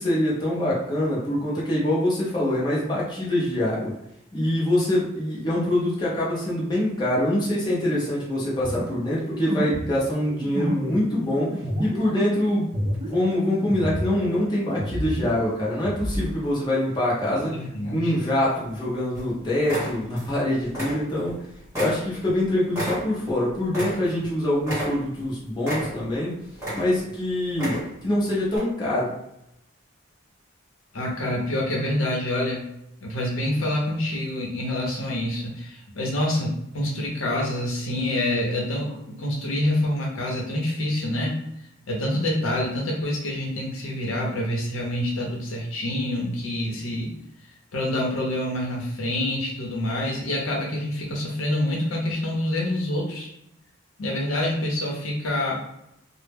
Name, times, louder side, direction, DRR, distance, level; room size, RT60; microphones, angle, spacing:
voice 1, 0.0-3.9 4.3-12.7 13.0-17.5 17.9-21.4 21.7-26.4 26.7-29.1, left 1 dB, 20° left, -6 dB, 0.6 m, -24 dB
sound 1, 8.6-14.4 14.6-16.3, equal, 30° right, 0.3 m, -30 dB
voice 2, 17.5-18.1 30.9-32.7 33.0-41.4 41.9-47.1 47.7-53.3 54.0-55.6, left 1 dB, 90° left, -1 dB, 0.7 m, -27 dB
sound 2, 18.5-18.8 19.1-19.3 19.6-20.4 20.7-21.4 21.7-24.3 24.6-25.3 25.6-26.2 26.5-27.1 27.5-28.1 28.5-28.6, equal, 15° right, 1.0 m, -31 dB
2.1 x 2.0 x 3.3 m, 0.79 s
head